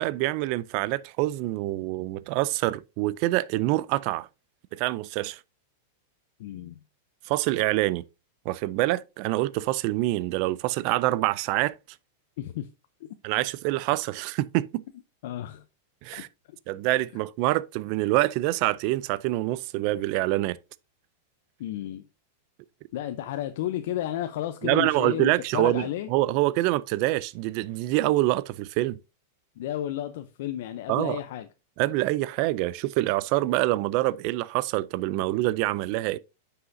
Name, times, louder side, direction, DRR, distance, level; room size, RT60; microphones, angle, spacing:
voice 1, 0.0-4.3 4.7-5.4 7.3-8.0 8.5-11.7 13.2-14.8 16.0-16.3 16.7-20.6 24.6-29.0 30.9-31.2 31.8-36.2, right 17 dB, 40° right, 0.4 m, -26 dB
voice 2, 6.4-6.8 12.4-12.7 13.0-13.1 15.2-15.6 21.6-22.0 22.9-26.1 29.6-31.5, left 12 dB, 60° left, 0.6 m, -32 dB
9.6 x 5.6 x 2.7 m
supercardioid pair, 160°, 0 cm